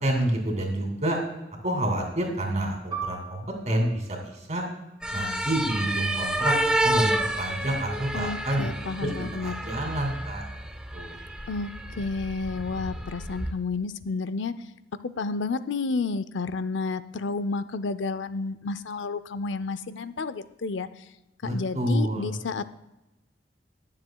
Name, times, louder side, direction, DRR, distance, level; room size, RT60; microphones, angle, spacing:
voice 1, 0.0-1.2 1.6-4.7 5.1-8.6 9.0-10.5 10.9-11.2 21.4-22.4, right 1 dB, 40° right, 1 dB, 2.6 m, -28 dB
Piano, 2.9-7.9 8.3-8.4 9.2-9.6, right 6 dB, 25° right, 2.6 m, -42 dB
sound 1, 5.0-13.5, right 1 dB, 5° right, 0.7 m, -30 dB
voice 2, 8.1-9.5 11.5-14.5 15.0-20.9 21.4-22.7, left 4 dB, 80° left, 14 dB, 0.5 m, -31 dB
22.0 x 7.4 x 2.3 m, 0.99 s
head